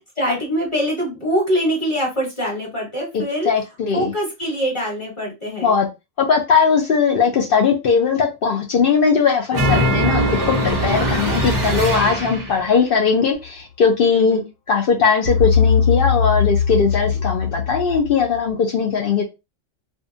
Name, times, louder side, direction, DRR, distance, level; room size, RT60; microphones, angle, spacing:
voice 1, 0.0-3.5 3.9-5.7 10.9-11.3 11.9-12.3 14.1-14.5, equal, 25° left, -5 dB, 1.3 m, -24 dB
voice 2, 3.4-4.1 5.6-5.9 6.2-14.4 14.7-19.2, left 5 dB, 60° left, 1 dB, 0.6 m, -19 dB
sound 1, 9.5-12.7, equal, 25° right, 0.4 m, -21 dB
sound 2, 15.3-18.4, left 7 dB, 85° left, 1.0 m, -19 dB
2.6 x 2.2 x 2.5 m, 0.24 s
omnidirectional pair, 1.3 m